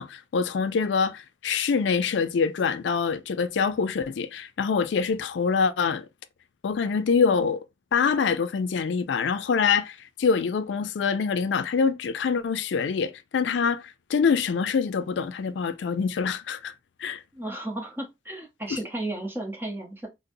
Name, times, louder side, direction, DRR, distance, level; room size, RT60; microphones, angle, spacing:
voice 1, 0.0-6.0 6.6-7.6 7.9-16.7 17.0-17.2 18.7-18.8, left 5 dB, 85° left, 0.4 m, -25 dB
voice 2, 17.3-20.1, right 1 dB, 10° right, 0.8 m, -34 dB
3.9 x 2.1 x 2.6 m
head